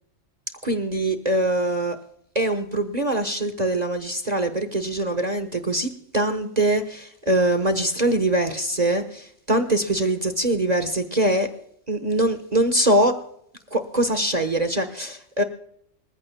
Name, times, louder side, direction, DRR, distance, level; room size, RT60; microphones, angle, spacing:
voice 1, 0.6-2.0 2.3-11.5 11.9-13.1 13.7-15.4, right 1 dB, 35° right, 8 dB, 1.2 m, -23 dB
26.5 x 15.0 x 2.2 m, 0.69 s
omnidirectional pair, 1.3 m